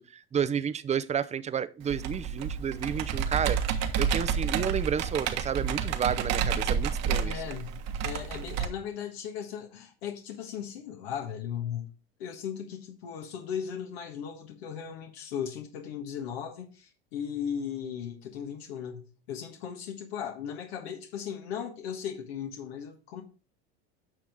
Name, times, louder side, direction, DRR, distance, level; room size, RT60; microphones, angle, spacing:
voice 1, 0.0-3.6 4.0-7.3, right 7 dB, 20° right, 0.6 m, -31 dB
Computer keyboard, 1.9-8.6, right 7 dB, 55° right, 1.4 m, -30 dB
voice 2, 7.2-11.9 12.2-23.2, left 8 dB, 75° left, 1.5 m, -37 dB
9.8 x 6.2 x 3.5 m
hypercardioid pair, 90°, 32 cm